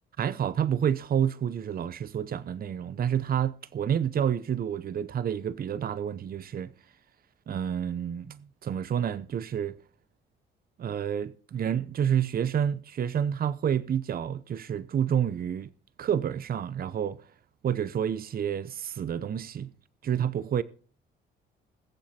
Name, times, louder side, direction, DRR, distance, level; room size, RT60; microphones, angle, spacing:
voice 1, 0.2-6.7 7.5-9.8 10.8-15.7 16.0-17.2 17.6-19.7 20.0-20.6, right 9 dB, 50° right, 0.7 m, -29 dB
21.0 x 7.3 x 4.3 m
cardioid pair, 90°, 20 cm